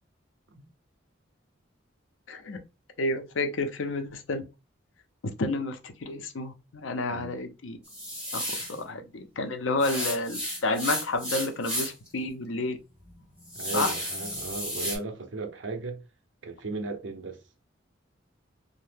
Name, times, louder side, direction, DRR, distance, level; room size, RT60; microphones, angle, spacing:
voice 1, 2.3-2.6 3.0-4.4 5.4-7.8 8.3-8.4 8.8-12.8 13.7-13.9, left 2 dB, 80° left, 0.6 m, -30 dB
sound 1, 7.8-8.8 9.8-12.1 12.5-12.6 13.1-15.0, equal, 5° right, 1.3 m, -33 dB
voice 2, 13.5-16.0 16.4-17.4, right 3 dB, 70° right, 0.6 m, -36 dB
2.7 x 2.1 x 3.4 m
head